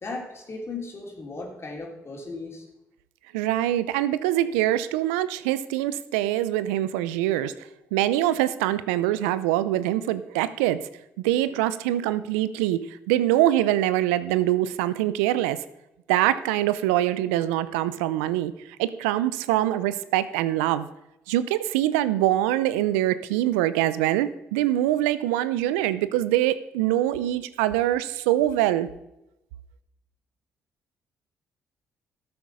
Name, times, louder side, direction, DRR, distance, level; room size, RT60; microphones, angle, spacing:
voice 1, 0.0-2.7, left 3 dB, 40° left, 0 dB, 3.5 m, -36 dB
voice 2, 3.3-7.5 7.9-10.9 11.2-15.6 16.1-18.5 18.8-20.9 21.3-28.9, right 13 dB, 90° right, 15 dB, 0.5 m, -24 dB
13.0 x 7.9 x 5.5 m, 0.90 s
hypercardioid pair, 55°, 7 cm